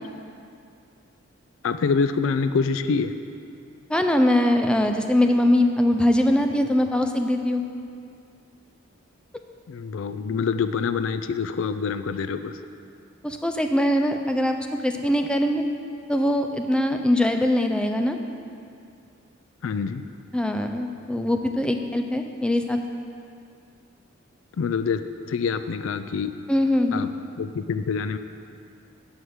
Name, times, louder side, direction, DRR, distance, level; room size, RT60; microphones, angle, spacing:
voice 1, 1.6-3.1 9.7-12.6 19.6-20.0 24.6-25.0 25.3-26.3 26.9-27.1 27.4-28.2, left 5 dB, 70° left, 10 dB, 0.4 m, -26 dB
voice 2, 3.9-7.6 13.2-14.6 14.8-15.6 16.1-18.2 20.3-22.8 26.5-27.1, left 1 dB, 5° left, 5 dB, 0.4 m, -22 dB
8.0 x 5.8 x 7.9 m, 2.4 s
head